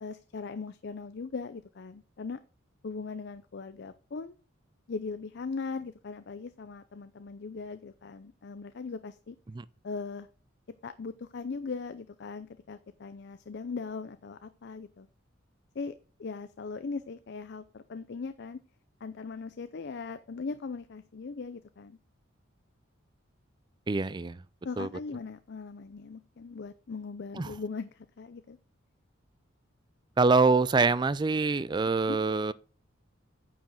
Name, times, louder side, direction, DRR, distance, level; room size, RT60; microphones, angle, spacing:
voice 1, 0.0-2.4 2.8-4.4 4.9-9.4 9.8-10.3 10.8-15.1 15.7-15.9 16.2-18.6 19.0-22.0 24.6-28.6 32.1-32.2, left 4 dB, 55° left, 0.5 m, -39 dB
voice 2, 23.9-24.4 24.8-24.9 27.4-27.5 30.2-32.5, right 4 dB, 20° right, 0.3 m, -25 dB
9.1 x 5.0 x 6.3 m
head